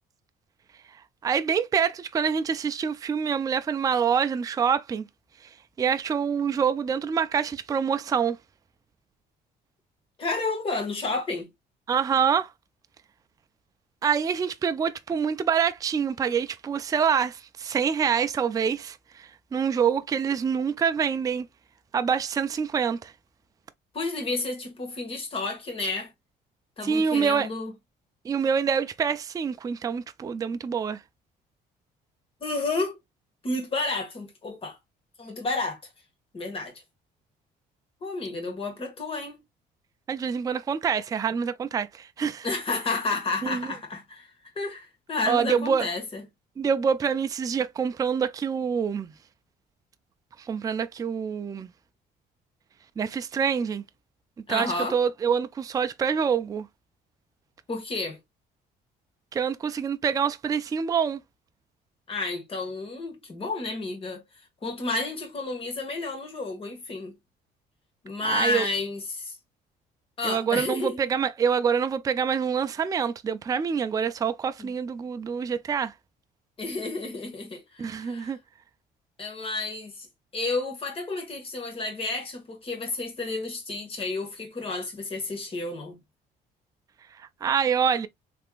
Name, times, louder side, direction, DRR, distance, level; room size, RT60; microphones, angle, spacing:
voice 1, 1.2-5.0 5.8-8.4 11.9-12.5 14.0-21.5 21.9-23.1 26.8-27.5 28.2-31.0 40.1-42.5 43.4-43.7 45.3-45.9 46.6-49.1 50.4-51.7 53.0-53.8 54.5-56.7 59.3-61.2 68.2-68.6 70.2-75.9 77.8-78.4 87.2-88.1, right 7 dB, 20° right, 0.3 m, -26 dB
voice 2, 10.2-11.5 23.9-26.1 26.8-27.7 32.4-33.0 33.4-34.8 35.2-35.8 36.3-36.7 38.0-39.4 42.4-44.3 44.6-46.2 54.5-55.0 57.7-58.2 62.1-64.2 64.6-67.2 68.0-69.3 70.2-71.0 74.6-74.7 76.6-78.3 79.2-80.1 80.3-86.0, left 3 dB, 35° left, 1.7 m, -31 dB
3.4 x 3.3 x 2.4 m
cardioid pair, 110°, 17 cm